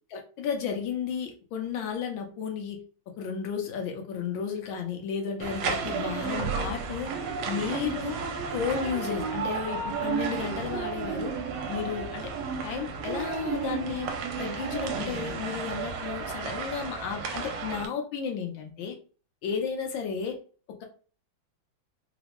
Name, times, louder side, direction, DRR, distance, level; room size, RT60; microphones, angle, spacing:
voice 1, 0.1-2.8 3.2-7.1 7.5-8.2 8.5-11.3 11.7-12.3 12.6-14.1 14.4-19.0 19.4-20.4, left 6 dB, 75° left, 3 dB, 1.5 m, -33 dB
sound 1, 5.4-17.9, right 5 dB, 80° right, 1.5 m, -32 dB
3.8 x 2.1 x 2.9 m, 0.38 s
omnidirectional pair, 2.3 m